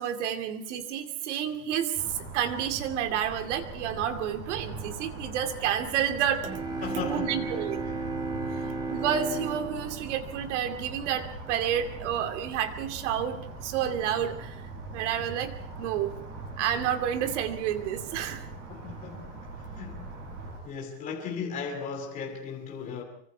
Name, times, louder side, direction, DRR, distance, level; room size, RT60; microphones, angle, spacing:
voice 1, 0.0-2.0 2.3-6.5 6.9-7.8 8.9-14.6 14.9-15.5 15.8-16.1 16.6-18.4, right 9 dB, 50° right, 2.5 m, -30 dB
sound 1, 1.9-20.6, right 3 dB, 25° right, 8.0 m, -41 dB
sound 2, 6.4-11.1, right 3 dB, 10° right, 2.2 m, -34 dB
voice 2, 6.8-8.1 8.4-8.8 18.7-19.4 19.8-20.1 20.6-23.0, left 6 dB, 15° left, 2.5 m, -37 dB
25.0 x 24.5 x 4.7 m
supercardioid pair, 180°, 46 cm